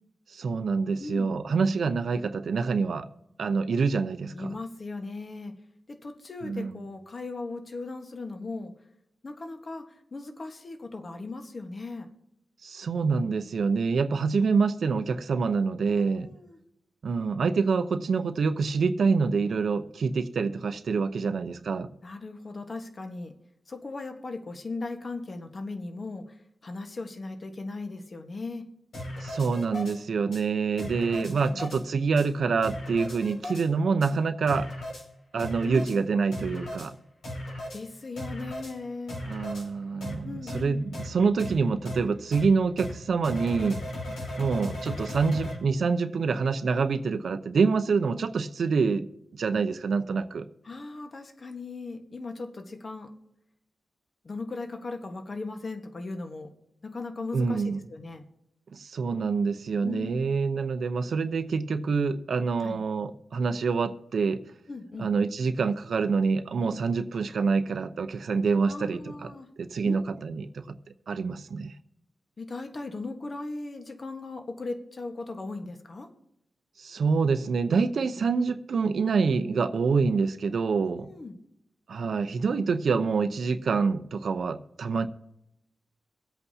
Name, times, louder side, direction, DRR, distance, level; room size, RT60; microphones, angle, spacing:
voice 1, 0.3-3.1 3.4-4.6 6.4-6.7 12.6-16.3 17.0-21.9 29.2-34.7 35.3-37.0 39.3-43.8 44.4-49.1 49.3-50.4 57.3-57.8 58.7-64.4 65.0-69.3 69.6-70.6 71.1-71.7 76.8-81.1 81.9-85.1, right 5 dB, 65° right, 9 dB, 0.7 m, -26 dB
voice 2, 1.0-1.3 4.3-5.5 5.9-8.7 9.2-12.1 15.9-16.6 22.0-23.3 23.7-28.7 31.1-31.6 35.6-36.0 37.7-39.2 40.2-40.8 44.1-44.2 50.6-53.1 54.2-56.5 56.8-58.2 59.8-60.2 62.6-62.8 64.7-65.1 68.7-69.5 69.8-70.0 72.4-76.1 81.0-81.4, left 3 dB, 40° left, 5 dB, 1.3 m, -38 dB
sound 1, 28.9-30.0 30.3-30.4 30.8-31.8 32.2-32.3 32.6-33.7 34.0-34.1 34.5-35.0 35.4-36.0 36.3-36.9 37.2-37.8 38.2-38.7 39.1-39.7 40.0-40.1 40.5-40.6 40.9-41.1 41.4-41.5 41.9-42.0 42.3-42.4 42.8-42.9 43.2-45.6, left 1 dB, 85° left, 5.5 m, -36 dB
24.0 x 8.1 x 2.8 m, 0.80 s
wide cardioid pair, 125°, 0 cm